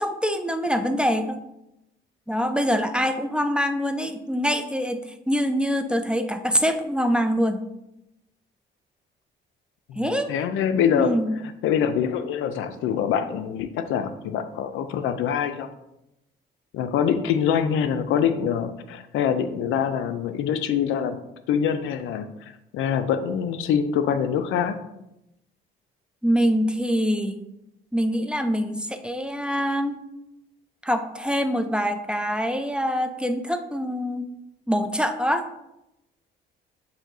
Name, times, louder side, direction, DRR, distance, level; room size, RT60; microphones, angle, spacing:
voice 1, 0.0-1.4 2.3-7.6 10.0-10.4 10.9-11.4 26.2-27.4 27.9-30.0 30.8-34.2 34.7-35.4, equal, 5° right, 7 dB, 0.3 m, -24 dB
voice 2, 10.3-11.1 11.6-15.7 16.7-21.2 21.5-24.8, left 8 dB, 85° left, 10 dB, 0.4 m, -24 dB
7.3 x 2.7 x 2.6 m, 0.88 s
cardioid pair, 90°, 20 cm